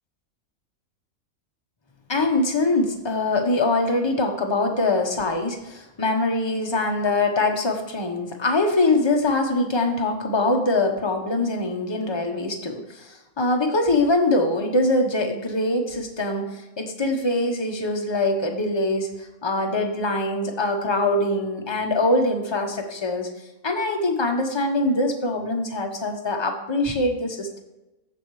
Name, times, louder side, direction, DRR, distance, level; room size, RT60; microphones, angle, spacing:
voice 1, 2.1-23.3 23.6-27.6, left 2 dB, 20° left, 2 dB, 1.1 m, -23 dB
15.5 x 5.3 x 3.3 m, 0.98 s
omnidirectional pair, 1.5 m